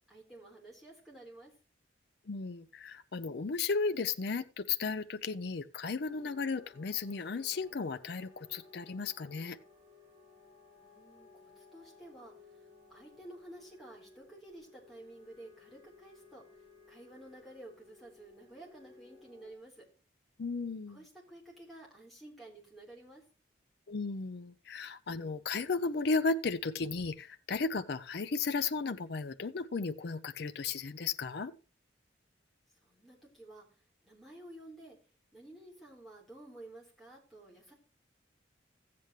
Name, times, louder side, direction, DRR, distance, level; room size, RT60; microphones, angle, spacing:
voice 1, 0.1-1.5 10.8-16.4 16.9-19.8 20.9-23.2 32.8-33.7 34.0-35.0 35.3-37.7, right 1 dB, ahead, -5 dB, 3.8 m, -52 dB
voice 2, 2.3-9.6 20.4-21.0 23.9-31.5, left 4 dB, 60° left, 10 dB, 0.5 m, -35 dB
sound 1, 6.1-19.5, left 4 dB, 25° right, 2.5 m, -59 dB
14.5 x 8.4 x 3.1 m, 0.34 s
head